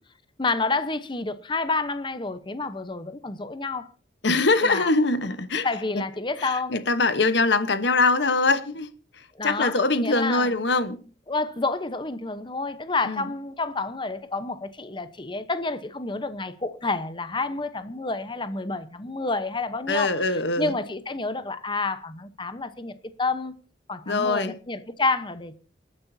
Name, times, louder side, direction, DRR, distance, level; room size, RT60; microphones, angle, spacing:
voice 1, 0.4-3.9 4.6-4.9 5.6-6.8 9.3-9.7 10.0-10.5 11.3-20.1 20.6-23.5 23.9-25.5, left 3 dB, 25° left, 0.9 m, -29 dB
voice 2, 4.2-5.7 5.9-6.0 6.4-11.0 13.0-13.3 19.9-20.7 24.1-24.5, left 3 dB, 70° left, 1.1 m, -23 dB
28.5 x 9.7 x 2.8 m
head